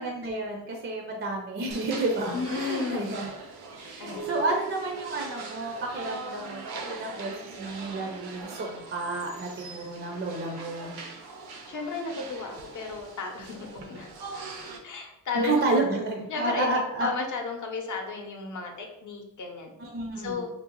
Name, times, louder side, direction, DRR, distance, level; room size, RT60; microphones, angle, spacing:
voice 1, 0.0-3.4 3.8-7.3 7.6-11.0 15.3-17.1 19.8-20.5, right 2 dB, 35° right, 1 dB, 0.5 m, -30 dB
sound 1, 1.7-14.8, right 4 dB, 70° right, 0.7 m, -42 dB
voice 2, 2.3-3.1 4.0-4.3 11.7-14.1 14.8-15.9 16.3-19.7 20.2-20.5, left 4 dB, 50° left, 2 dB, 0.7 m, -33 dB
sound 2, 4.2-6.7, right 9 dB, 85° left, 0.5 m, -42 dB
3.7 x 2.0 x 2.9 m, 0.86 s
cardioid pair, 100°, 39 cm